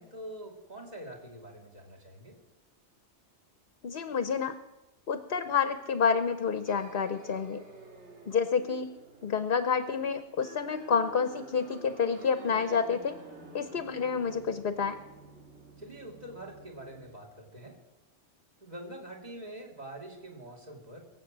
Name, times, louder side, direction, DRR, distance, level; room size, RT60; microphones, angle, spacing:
voice 1, 0.0-2.4 15.8-17.8 18.6-21.0, right 1 dB, 35° right, 1 dB, 2.9 m, -45 dB
voice 2, 3.8-4.6 5.1-7.6 8.3-8.9 9.2-13.2 13.5-15.0, left 6 dB, 50° left, 10 dB, 1.0 m, -29 dB
sound 1, 6.7-17.2, right 3 dB, 65° right, 2.1 m, -51 dB
22.5 x 7.9 x 7.4 m, 1.0 s
omnidirectional pair, 1.3 m